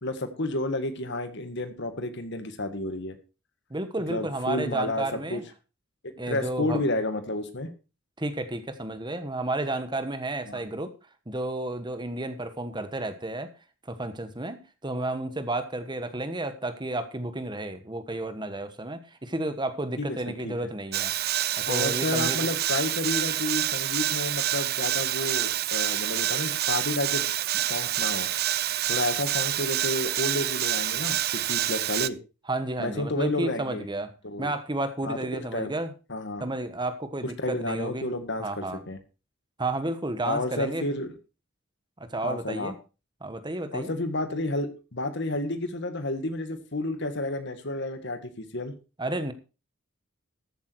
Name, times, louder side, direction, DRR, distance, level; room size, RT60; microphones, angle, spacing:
voice 1, 0.0-3.2 4.1-5.4 6.0-7.7 10.5-10.6 20.0-20.2 20.4-20.5 21.7-27.3 27.7-28.3 28.9-32.2 32.8-33.9 34.2-34.5 35.0-35.7 36.1-36.5 37.2-39.0 40.3-41.1 42.2-42.7 43.7-48.7, left 2 dB, 55° left, 9 dB, 1.8 m, -31 dB
voice 2, 3.7-5.4 6.2-6.8 8.2-10.9 11.3-13.5 13.9-22.5 32.5-34.1 34.4-35.9 36.4-38.1 38.4-38.8 39.6-40.8 42.1-42.8 43.2-43.9 49.0-49.3, right 2 dB, 20° right, 10 dB, 1.2 m, -32 dB
sound 1, 20.9-32.1, right 13 dB, 50° right, 0.5 m, -27 dB
14.0 x 8.4 x 4.6 m, 0.31 s
head